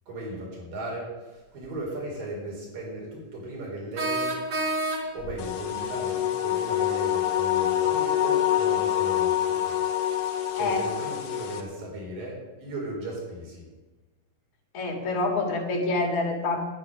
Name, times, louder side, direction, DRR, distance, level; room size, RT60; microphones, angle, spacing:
voice 1, 0.1-4.4 5.1-9.8 10.3-13.7, right 1 dB, 80° right, -2 dB, 5.4 m, -36 dB
sound 1, 1.6-1.7 4.0-5.4, right 1 dB, 50° right, 1.4 m, -28 dB
sound 2, 5.4-11.6, left 11 dB, 80° left, 2.9 m, -26 dB
voice 2, 14.7-16.7, left 3 dB, 60° left, 0 dB, 3.3 m, -27 dB
11.0 x 9.5 x 6.5 m, 1.2 s
omnidirectional pair, 3.9 m